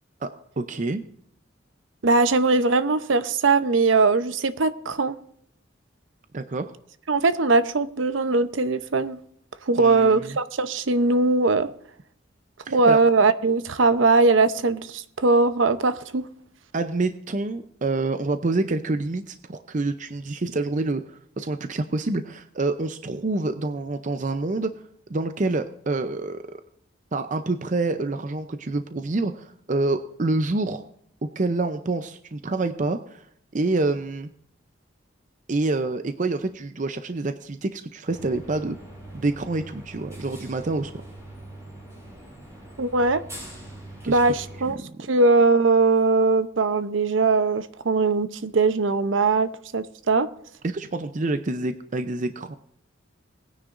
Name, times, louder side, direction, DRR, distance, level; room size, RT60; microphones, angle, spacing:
voice 1, 0.6-1.0 6.3-6.7 9.8-10.4 12.7-13.0 16.7-24.7 25.1-26.6 27.1-30.8 31.2-33.3 33.5-34.3 35.5-38.8 39.1-41.0 44.0-44.2 50.6-52.6, right 2 dB, 40° right, 0.6 m, -27 dB
voice 2, 2.0-5.2 7.1-9.2 9.7-11.7 12.7-16.2 42.8-43.2 44.1-44.8 45.1-50.3, right 3 dB, 85° right, 0.7 m, -20 dB
sound 1, 38.0-44.7, right 1 dB, 15° right, 5.0 m, -42 dB
20.0 x 9.8 x 2.6 m
head